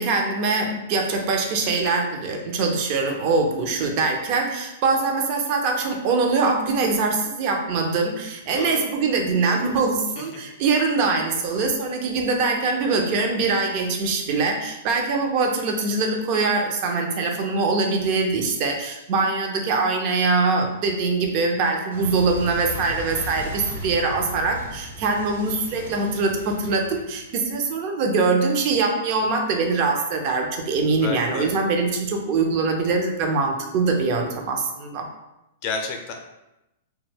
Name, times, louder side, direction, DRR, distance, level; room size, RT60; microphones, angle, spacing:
voice 1, 0.0-35.1, right 3 dB, 45° right, 2 dB, 0.5 m, -23 dB
voice 2, 8.5-8.8 30.9-31.5 35.6-36.1, left 4 dB, 45° left, 3 dB, 0.5 m, -30 dB
Clock, 12.2-15.2 15.5-18.5 18.8-27.6, equal, 85° right, 0.7 m, -37 dB
2.2 x 2.1 x 3.2 m, 0.92 s
hypercardioid pair, 115°, 0 cm